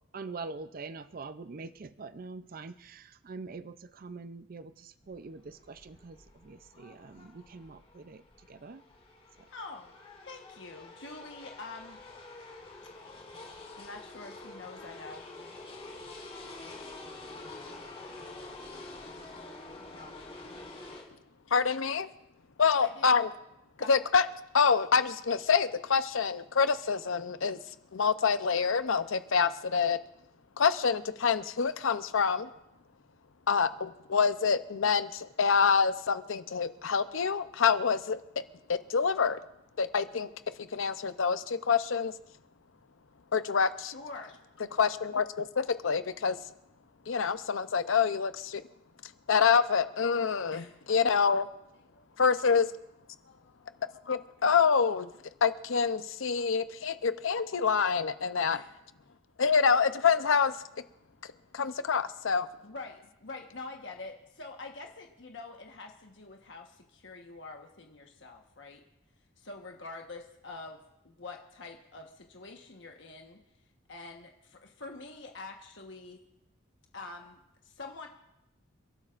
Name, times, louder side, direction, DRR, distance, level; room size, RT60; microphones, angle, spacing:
voice 1, 0.1-8.8 9.4-9.5, right 4 dB, 45° right, 12 dB, 0.5 m, -44 dB
sound 1, 5.0-21.0, left 2 dB, 30° left, 3.2 m, -47 dB
voice 2, 9.5-9.9 10.3-12.0 13.7-15.3 19.9-20.1 22.8-23.1 23.8-24.0 43.8-44.4 50.5-50.8 51.9-52.1 53.2-53.7 58.5-58.8 62.6-68.8 69.4-73.4 73.9-76.2 76.9-78.1, left 3 dB, 65° left, 2 dB, 1.3 m, -46 dB
voice 3, 21.5-22.1 22.6-23.3 23.9-24.3 24.5-27.6 27.9-30.0 30.6-32.5 33.5-38.2 38.7-39.4 39.8-40.3 40.6-42.1 43.3-43.9 44.8-46.4 47.1-48.6 49.3-51.5 52.2-52.7 54.1-55.1 55.4-58.6 59.4-60.6 61.5-62.5, left 6 dB, 80° left, 12 dB, 0.7 m, -26 dB
30.0 x 12.0 x 2.5 m, 0.85 s
head